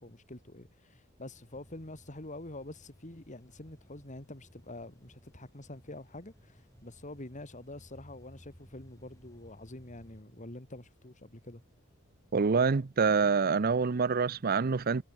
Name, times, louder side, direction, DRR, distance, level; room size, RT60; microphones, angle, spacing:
voice 1, 0.0-11.6, left 1 dB, 35° left, 3.1 m, -46 dB
sound 1, 1.3-10.2, equal, 15° left, 4.9 m, -59 dB
voice 2, 12.3-15.0, right 5 dB, 45° right, 0.6 m, -26 dB
head